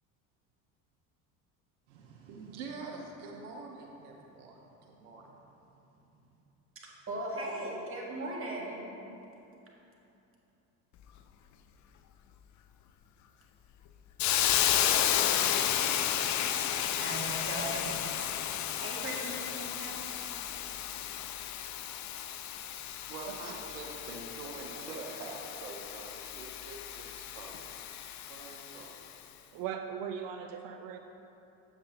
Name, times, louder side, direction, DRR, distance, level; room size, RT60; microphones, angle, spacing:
voice 1, 1.9-5.5 22.7-27.6 28.3-29.0, right 3 dB, 85° right, 0 dB, 0.9 m, -45 dB
voice 2, 7.1-8.8 16.8-17.9 18.7-20.0, right 1 dB, 30° right, -3 dB, 1.7 m, -38 dB
Hiss, 14.2-29.0, left 11 dB, 45° left, 0.5 m, -32 dB
voice 3, 29.5-31.0, right 8 dB, 55° right, 6 dB, 0.5 m, -38 dB
7.7 x 7.6 x 2.9 m, 2.9 s
hypercardioid pair, 85°, 42 cm